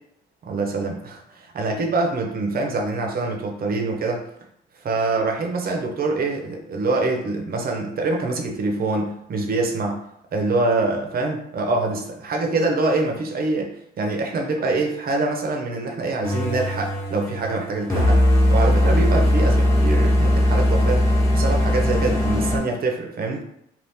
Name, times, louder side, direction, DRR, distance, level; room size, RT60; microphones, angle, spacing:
voice 1, 0.4-4.3 4.8-10.0 10.3-18.2 18.5-23.4, right 3 dB, 50° right, 2 dB, 0.7 m, -25 dB
sound 1, 16.2-22.6, left 1 dB, 15° left, 1.0 m, -19 dB
2.7 x 2.5 x 3.5 m, 0.75 s
cardioid pair, 90°, 20 cm